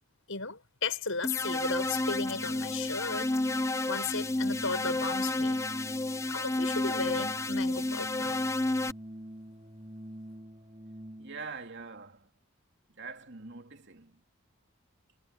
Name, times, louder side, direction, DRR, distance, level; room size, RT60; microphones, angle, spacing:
voice 1, 0.3-3.3 3.9-5.6 6.3-8.4, left 4 dB, 65° left, 6.5 m, -35 dB
sound 1, 1.2-8.9, left 2 dB, 15° left, 0.5 m, -31 dB
Organ, 1.2-11.5, equal, 25° right, 5.0 m, -47 dB
voice 2, 11.2-12.3 13.0-14.2, right 4 dB, 50° right, 3.0 m, -44 dB
head